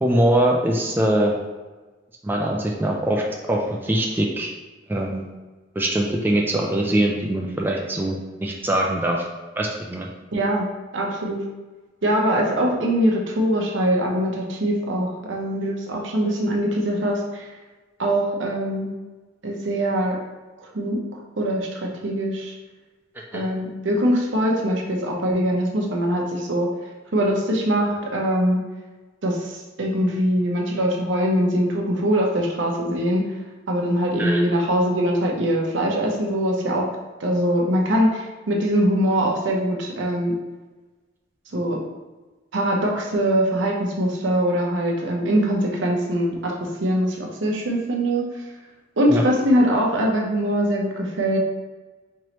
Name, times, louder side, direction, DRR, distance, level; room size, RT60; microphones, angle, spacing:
voice 1, 0.0-1.3 2.2-3.2 3.5-4.5 4.9-5.3 5.8-9.3 9.6-10.1 23.3-23.4 34.2-34.4 49.1-49.2, right 1 dB, 10° right, -1 dB, 0.4 m, -22 dB
voice 2, 10.3-10.7 10.9-11.4 12.0-17.5 18.0-18.9 19.4-20.2 20.6-21.0 21.4-22.5 23.3-26.7 27.1-28.6 29.2-33.2 33.7-36.9 37.2-40.3 41.5-41.8 42.5-48.3 49.0-51.4, equal, 75° right, -1 dB, 0.8 m, -22 dB
4.6 x 3.0 x 2.9 m, 1.2 s
head